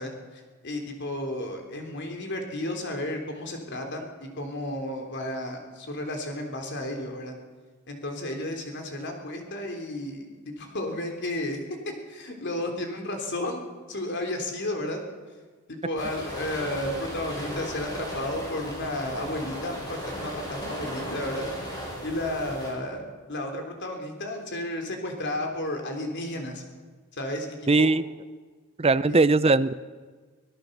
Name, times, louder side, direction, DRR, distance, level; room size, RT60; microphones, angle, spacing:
voice 1, 0.0-7.4 7.9-11.6 12.1-15.0 15.7-21.5 22.0-23.0 23.3-26.6 27.1-27.9 29.1-29.2, left 1 dB, 55° left, 3 dB, 3.6 m, -33 dB
sound 1, 16.0-22.7, equal, 20° left, 7.4 m, -36 dB
voice 2, 27.7-28.0 28.8-29.7, right 3 dB, 30° right, 14 dB, 0.6 m, -20 dB
25.0 x 17.5 x 6.8 m, 1.4 s
head